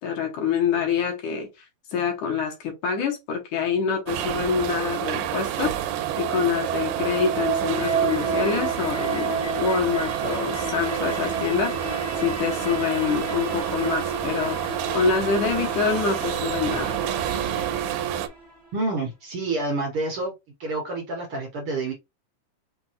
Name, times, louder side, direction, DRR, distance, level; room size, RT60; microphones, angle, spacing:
voice 1, 0.0-1.5 1.9-5.8 6.2-14.6 14.9-16.9, left 6 dB, 65° left, 2.8 m, -26 dB
sound 1, 4.1-18.3, right 11 dB, 85° right, 2.3 m, -29 dB
sound 2, 5.9-18.7, right 4 dB, 20° left, 0.6 m, -31 dB
voice 2, 18.7-20.3 20.6-21.9, right 2 dB, 65° right, 1.4 m, -28 dB
6.0 x 2.8 x 2.9 m
omnidirectional pair, 4.0 m